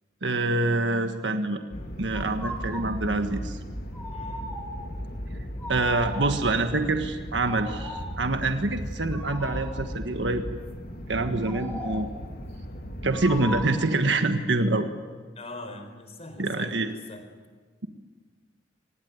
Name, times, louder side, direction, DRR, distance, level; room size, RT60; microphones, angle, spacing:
voice 1, 0.2-1.6 2.0-3.6 5.7-10.6 11.1-12.1 13.0-14.9 16.4-16.9, right 2 dB, 85° right, 7 dB, 1.5 m, -26 dB
sound 1, 1.7-13.7, equal, 55° left, 2.6 m, -37 dB
sound 2, 2.1-3.0 3.9-4.9 5.6-6.5 7.4-8.2 9.1-9.8 11.4-12.2 13.1-13.9, left 1 dB, 10° left, 4.2 m, -38 dB
voice 2, 4.1-4.5 15.3-17.3, left 2 dB, 35° left, 7 dB, 4.3 m, -42 dB
24.5 x 20.5 x 9.6 m, 1.5 s
head